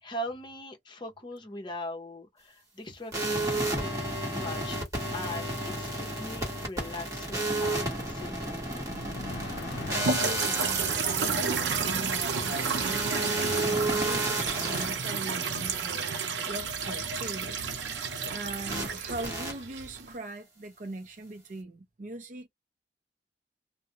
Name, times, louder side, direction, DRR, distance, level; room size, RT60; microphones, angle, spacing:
voice 1, 0.0-3.9 4.3-4.8 5.1-8.7, left 1 dB, 25° left, 0.7 m, -40 dB
sound 1, 3.1-14.9 18.7-18.9 19.2-19.5, right 1 dB, 20° right, 1.1 m, -32 dB
sound 2, 8.9-13.5, left 4 dB, 85° left, 0.5 m, -44 dB
voice 2, 9.8-10.9 11.2-17.9 18.3-22.5, right 2 dB, 45° right, 0.5 m, -40 dB
sound 3, 10.0-20.1, right 5 dB, 90° right, 0.6 m, -31 dB
2.3 x 2.0 x 2.8 m
head